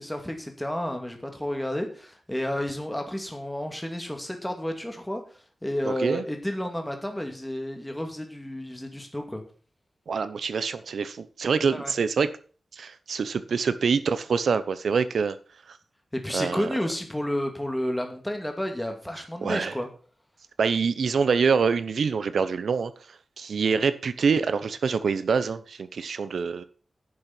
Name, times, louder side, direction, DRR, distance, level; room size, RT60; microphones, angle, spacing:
voice 1, 0.0-5.2 5.6-9.4 11.7-11.9 16.1-19.9, left 1 dB, 5° left, 2.3 m, -31 dB
voice 2, 5.8-6.2 10.1-12.3 12.7-15.4 15.7-15.8 16.3-16.7 19.4-19.8 20.6-22.9 23.4-26.6, right 5 dB, 85° right, 0.8 m, -25 dB
10.5 x 6.8 x 6.0 m
wide cardioid pair, 140°, 0 cm